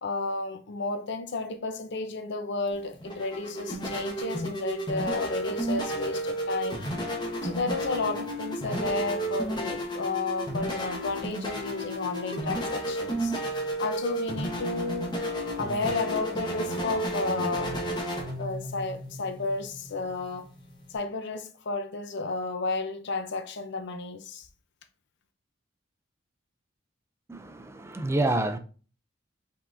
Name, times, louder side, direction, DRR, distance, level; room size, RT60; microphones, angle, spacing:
voice 1, 0.0-6.8 7.4-13.4 13.8-15.1 15.6-17.8 18.4-20.5 20.9-24.5, left 3 dB, 60° left, 0.6 m, -32 dB
sound 1, 2.7-21.0, right 1 dB, 25° left, 1.0 m, -32 dB
voice 2, 27.3-28.6, right 2 dB, 15° right, 0.4 m, -28 dB
5.4 x 3.6 x 2.6 m
head